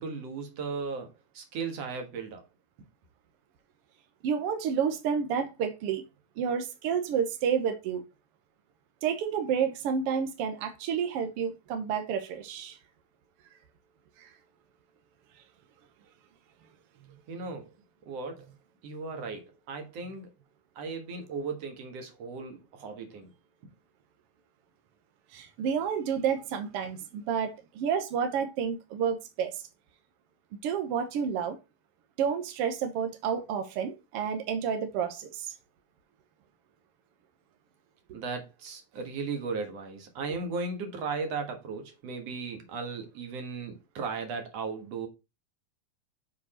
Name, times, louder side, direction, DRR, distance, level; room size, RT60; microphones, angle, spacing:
voice 1, 0.0-2.4 17.3-17.7 18.1-18.5 18.8-20.3 20.8-23.3 23.6-23.7 38.1-45.1, right 4 dB, 55° right, 2.3 m, -36 dB
voice 2, 4.2-6.0 6.4-8.0 9.0-12.8 14.2-14.3 25.3-29.6 30.6-31.6 32.2-35.5, right 7 dB, 80° right, 1.3 m, -30 dB
6.8 x 4.8 x 4.3 m
omnidirectional pair, 3.9 m